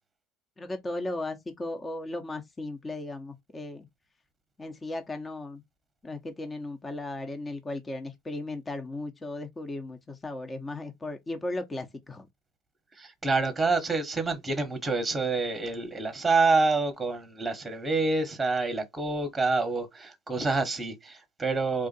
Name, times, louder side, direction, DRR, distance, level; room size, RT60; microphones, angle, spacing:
voice 1, 0.6-3.9 4.6-5.6 6.0-12.3, left 2 dB, 20° left, 0.9 m, -36 dB
voice 2, 13.0-21.9, right 3 dB, 15° right, 1.1 m, -27 dB
3.6 x 2.5 x 4.0 m
supercardioid pair, 110°, 0 cm